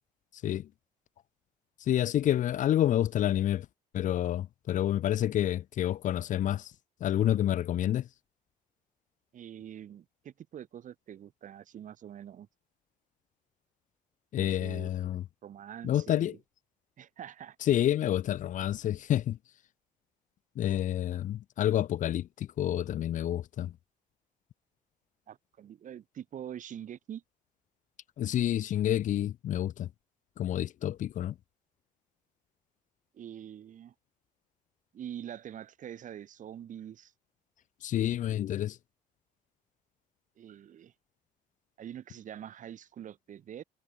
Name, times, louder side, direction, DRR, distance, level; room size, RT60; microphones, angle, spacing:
voice 1, 1.9-3.7 3.9-6.7 7.0-8.1 14.3-15.2 15.8-16.4 17.6-19.4 20.6-23.7 28.2-29.9 30.4-31.3 37.8-38.8, left 11 dB, 50° left, 0.5 m, -28 dB
voice 2, 9.3-12.5 14.3-14.9 15.4-16.4 17.0-17.6 25.3-27.2 33.1-33.9 34.9-37.1 40.4-40.9 41.8-43.6, right 10 dB, 50° right, 1.3 m, -44 dB
cardioid pair, 110°, 17 cm